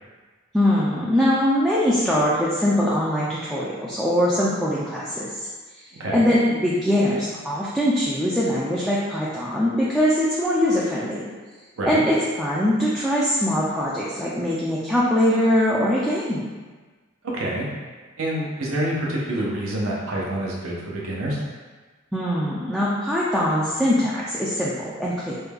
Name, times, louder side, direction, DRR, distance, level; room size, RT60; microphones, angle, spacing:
voice 1, 0.5-5.4 5.7-11.2 11.8-16.4 22.1-25.3, equal, ahead, -7 dB, 0.3 m, -22 dB
voice 2, 17.2-17.6 18.2-21.4, right 1 dB, 85° right, -4 dB, 0.8 m, -27 dB
3.3 x 2.3 x 3.4 m, 1.3 s
head